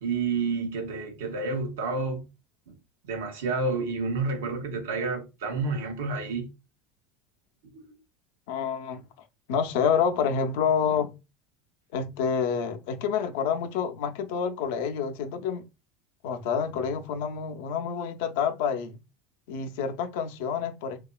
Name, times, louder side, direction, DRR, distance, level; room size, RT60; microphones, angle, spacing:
voice 1, 0.0-2.3 2.7-2.8 3.0-6.5 7.7-7.9, right 4 dB, 90° right, 0.7 m, -29 dB
voice 2, 8.5-9.0 9.5-11.1 11.9-15.6 16.2-19.0 19.5-21.0, left 7 dB, 75° left, 0.4 m, -28 dB
2.9 x 2.3 x 2.2 m
supercardioid pair, 115°, 0 cm